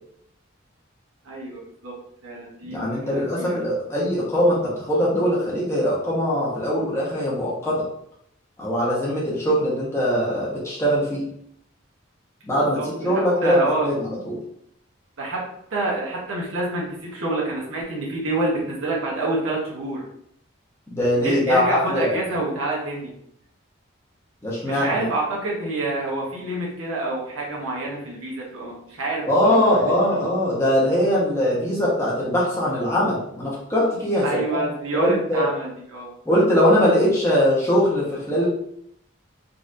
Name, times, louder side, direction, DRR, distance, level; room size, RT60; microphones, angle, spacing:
voice 1, 1.2-1.9 2.2-3.6 12.8-13.9 15.2-15.4 15.7-20.0 21.2-23.1 24.6-30.3 34.2-36.1, right 2 dB, 80° right, -4 dB, 1.1 m, -27 dB
voice 2, 2.7-7.8 8.6-11.3 12.4-14.4 20.9-22.2 24.4-25.1 29.2-34.6 34.9-35.5 36.3-38.5, equal, 15° left, -7 dB, 1.1 m, -21 dB
3.9 x 2.8 x 2.5 m, 0.71 s
head